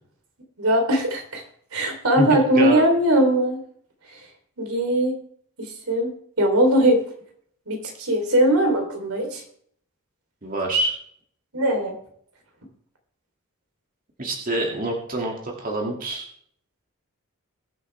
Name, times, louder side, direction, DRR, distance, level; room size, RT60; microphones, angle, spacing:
voice 1, 0.6-1.4 1.7-3.6 4.6-5.1 5.6-6.1 6.4-7.0 7.7-9.4 11.5-11.9, right 1 dB, 85° right, 3 dB, 3.3 m, -20 dB
voice 2, 2.2-2.8 10.4-10.9 14.2-16.2, right 2 dB, 40° right, -1 dB, 2.2 m, -26 dB
21.5 x 8.2 x 3.3 m, 0.65 s
head